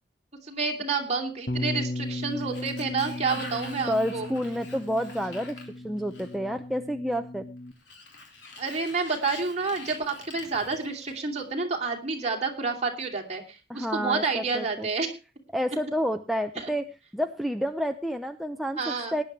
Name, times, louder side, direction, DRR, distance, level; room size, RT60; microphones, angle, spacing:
voice 1, 0.5-4.3 8.6-15.1 16.6-16.7 18.8-19.1, right 4 dB, 40° right, 1 dB, 2.8 m, -29 dB
Bass guitar, 1.5-7.7, left 1 dB, 55° left, 1.1 m, -36 dB
Sliding door, 1.9-6.6 7.7-11.4, left 3 dB, 80° left, 3.5 m, -46 dB
voice 2, 3.9-7.5 13.7-14.9 15.5-16.8 17.1-19.2, equal, ahead, 5 dB, 0.6 m, -29 dB
19.5 x 10.0 x 3.1 m, 0.29 s
head